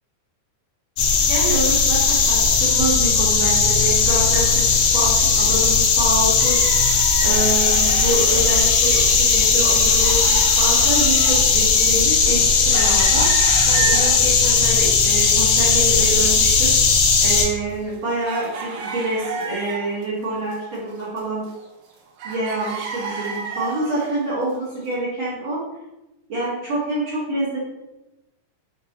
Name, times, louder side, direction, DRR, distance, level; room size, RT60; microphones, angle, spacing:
sound 1, 1.0-17.5, left 5 dB, 85° left, 1.5 m, -17 dB
voice 1, 1.3-4.6 4.9-6.6 7.2-13.3 13.7-16.7 17.2-21.4 22.2-25.6 26.3-27.6, right 1 dB, 60° right, -9 dB, 1.4 m, -26 dB
sound 2, 6.4-9.2 9.4-14.5 15.0-15.9 16.1-16.2 16.8-20.0 20.4-21.9 22.2-24.2 24.8-24.9, right 5 dB, 75° right, 2.0 m, -32 dB
6.7 x 2.3 x 2.8 m, 0.97 s
omnidirectional pair, 3.8 m